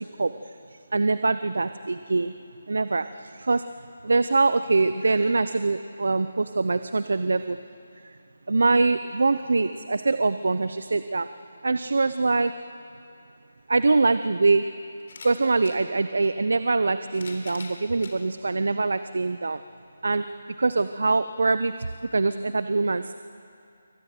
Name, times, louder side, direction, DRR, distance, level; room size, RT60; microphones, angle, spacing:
voice 1, 0.9-2.3 2.7-3.1 3.5-3.6 4.0-7.6 8.5-11.3 11.6-12.5 13.7-14.7 15.2-19.6 20.0-20.2 20.6-21.7 22.1-23.1, right 3 dB, 75° right, 12 dB, 0.7 m, -23 dB
sound 1, 13.6-13.7 15.0-15.8 16.8-18.2 18.9-19.0 20.3-20.4, left 3 dB, 55° left, 3.7 m, -44 dB
23.5 x 17.0 x 9.3 m, 2.6 s
hypercardioid pair, 170°, 0 cm